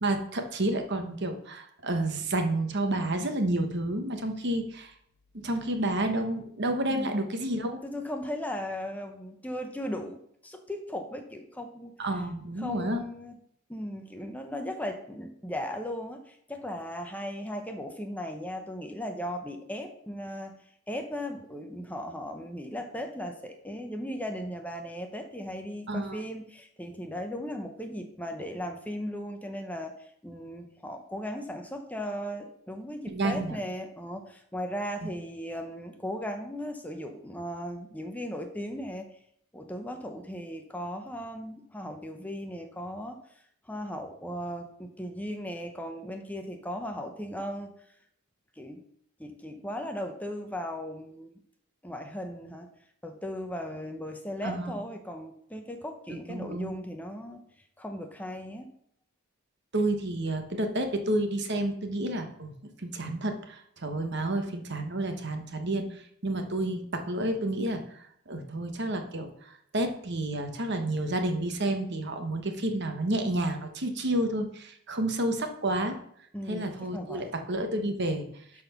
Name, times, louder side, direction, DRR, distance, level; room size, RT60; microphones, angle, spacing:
voice 1, 0.0-4.9 5.3-7.8 12.0-13.0 25.9-26.2 33.1-33.6 35.0-35.1 54.4-54.7 56.1-56.7 59.7-62.5 62.8-76.0 76.5-78.4, right 1 dB, 50° right, 6 dB, 1.1 m, -30 dB
voice 2, 7.8-11.9 12.6-13.3 13.7-20.6 20.9-29.9 30.2-39.1 39.5-43.2 43.7-47.7 48.6-48.8 49.2-51.3 51.8-52.7 53.0-57.4 57.8-58.7 76.3-77.3, equal, 5° left, 4 dB, 0.7 m, -37 dB
12.0 x 4.2 x 5.8 m, 0.68 s
head